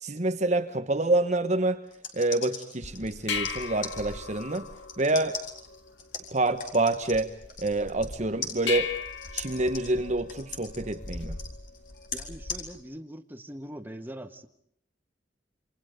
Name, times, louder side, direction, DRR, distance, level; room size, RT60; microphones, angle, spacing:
voice 1, 0.0-1.8 2.1-4.7 5.0-5.4 6.3-7.3 7.6-8.9 9.3-11.4, right 2 dB, 40° right, 7 dB, 1.2 m, -27 dB
sound 1, 1.9-8.2 8.4-12.6, left 5 dB, 45° left, 4.1 m, -39 dB
sound 2, 2.8-12.8, left 5 dB, 75° left, 2.0 m, -39 dB
voice 2, 12.1-14.5, equal, 10° right, 6 dB, 1.5 m, -42 dB
28.0 x 27.5 x 5.2 m, 0.66 s
head